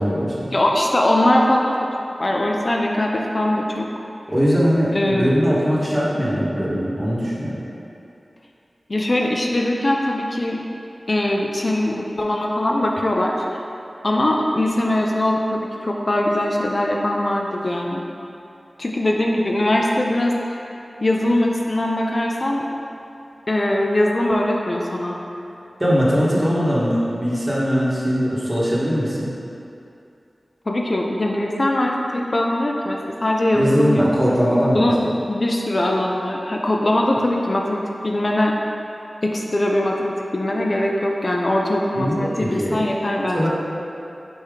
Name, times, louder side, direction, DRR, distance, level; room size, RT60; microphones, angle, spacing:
voice 1, 0.0-0.5 4.3-7.6 25.8-29.3 33.6-34.9 41.9-42.9 43.3-43.5, equal, 20° right, -7 dB, 1.0 m, -20 dB
voice 2, 0.5-1.9 2.2-3.9 4.9-5.3 8.9-10.6 11.1-13.6 14.0-18.0 18.8-20.6 21.0-22.7 23.5-25.2 30.7-34.1 34.7-35.0 35.3-38.5 39.2-43.5, left 1 dB, 50° left, -1 dB, 0.4 m, -21 dB
4.2 x 3.5 x 3.4 m, 2.7 s
wide cardioid pair, 50°, 0 cm